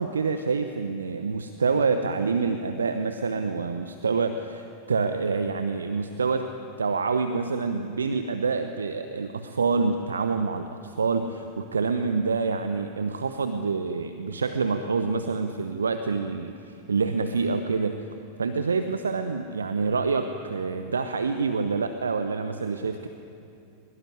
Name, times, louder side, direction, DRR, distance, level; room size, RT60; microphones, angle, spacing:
voice 1, 0.0-6.5 6.8-18.1 18.4-23.1, right 4 dB, 70° right, 8 dB, 0.9 m, -27 dB
22.5 x 21.0 x 9.9 m, 2.6 s
figure-of-eight pair, 90°, 0 cm